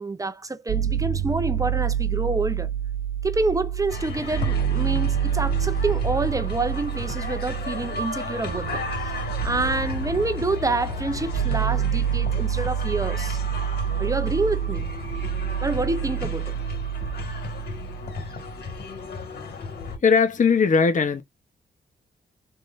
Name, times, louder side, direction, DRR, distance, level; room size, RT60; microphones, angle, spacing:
voice 1, 0.0-2.7 3.2-8.8 9.2-13.4 14.0-14.9 15.6-16.6, right 3 dB, 20° right, 0.6 m, -27 dB
sound 1, 0.7-18.6, right 8 dB, 75° right, 0.5 m, -27 dB
sound 2, 3.9-20.0, left 4 dB, 60° left, 2.2 m, -35 dB
voice 2, 20.0-21.2, left 5 dB, 45° left, 0.9 m, -19 dB
3.6 x 3.2 x 2.5 m
cardioid pair, 105°, 18 cm